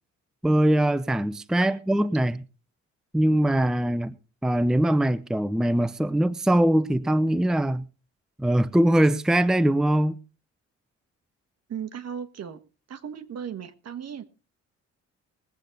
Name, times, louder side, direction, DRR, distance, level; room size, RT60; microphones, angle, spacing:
voice 1, 0.4-2.4 3.1-4.1 4.4-7.8 8.4-10.2, right 1 dB, ahead, 0.6 m, -22 dB
voice 2, 11.7-12.6 12.9-14.2, right 8 dB, 55° right, 1.5 m, -36 dB
20.5 x 8.3 x 4.0 m
cardioid pair, 90°, 30 cm